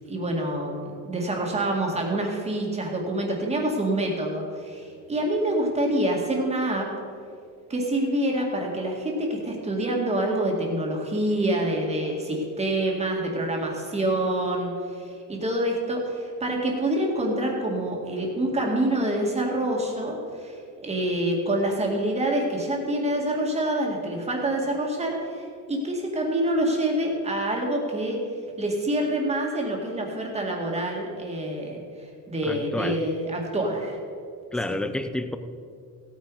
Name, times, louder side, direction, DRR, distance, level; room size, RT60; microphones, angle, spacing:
voice 1, 0.1-6.9 7.7-20.6 20.8-28.2 28.6-31.8 32.3-34.0, right 1 dB, 20° right, 0 dB, 2.0 m, -26 dB
voice 2, 32.4-33.0 34.5-35.4, left 1 dB, 5° left, 9 dB, 0.4 m, -29 dB
16.5 x 9.2 x 4.8 m, 2.4 s
cardioid pair, 160°, 34 cm